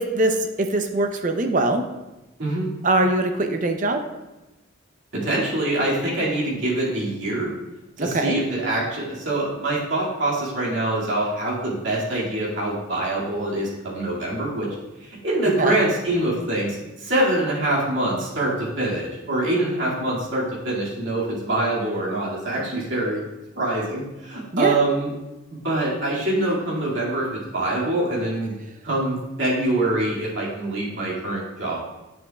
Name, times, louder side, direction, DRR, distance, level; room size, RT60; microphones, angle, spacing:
voice 1, 0.0-1.8 2.8-4.0 8.0-8.4 15.6-15.8 24.5-24.8, right 2 dB, 40° right, 6 dB, 0.6 m, -22 dB
voice 2, 5.1-7.5 8.0-14.7 15.0-23.2 23.6-25.1 25.5-28.6 28.8-31.8, right 1 dB, 70° right, -5 dB, 2.2 m, -24 dB
9.0 x 6.9 x 2.3 m, 1.0 s
head